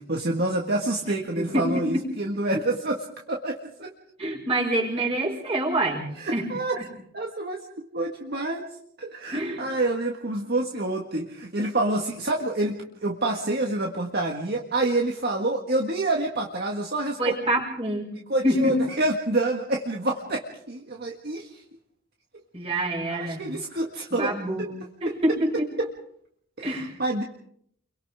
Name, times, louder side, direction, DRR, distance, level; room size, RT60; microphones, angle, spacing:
voice 1, 0.0-3.9 6.1-6.9 7.1-8.7 9.0-17.3 18.3-21.6 23.1-24.7 25.0-25.2 25.5-25.9 26.6-27.2, right 2 dB, 50° right, 1 dB, 1.8 m, -28 dB
voice 2, 1.4-1.9 4.2-6.5 9.3-9.6 17.2-18.2 18.4-18.8 22.5-23.4 24.1-24.7 25.0-25.7 26.6-27.0, right 1 dB, 30° right, 0 dB, 5.5 m, -26 dB
30.0 x 23.5 x 3.7 m, 0.66 s
head